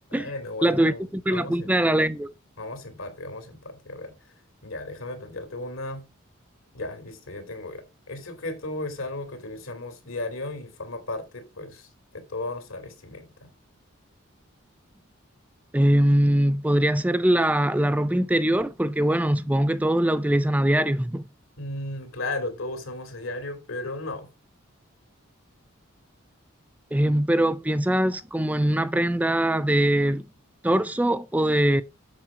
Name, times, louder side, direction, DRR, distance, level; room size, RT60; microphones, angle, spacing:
voice 1, 0.1-1.7 2.6-4.1 4.6-6.0 6.7-13.5 21.6-24.3, left 2 dB, 85° left, 2.7 m, -35 dB
voice 2, 0.6-2.3 15.7-21.2 26.9-30.2 30.6-31.8, right 1 dB, 5° right, 0.4 m, -22 dB
7.5 x 6.9 x 4.9 m
head